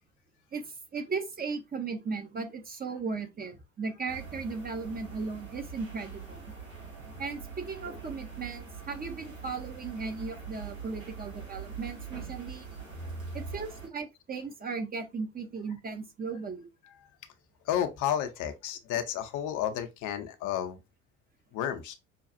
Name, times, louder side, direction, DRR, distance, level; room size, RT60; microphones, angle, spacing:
voice 1, 0.5-6.4 7.2-12.6 13.3-16.7, right 4 dB, 25° right, 0.7 m, -36 dB
sound 1, 4.1-13.9, right 6 dB, 85° right, 1.6 m, -44 dB
voice 2, 17.6-20.8 21.5-21.9, left 10 dB, 50° left, 0.7 m, -32 dB
5.7 x 2.3 x 2.6 m
figure-of-eight pair, 65°, 40 cm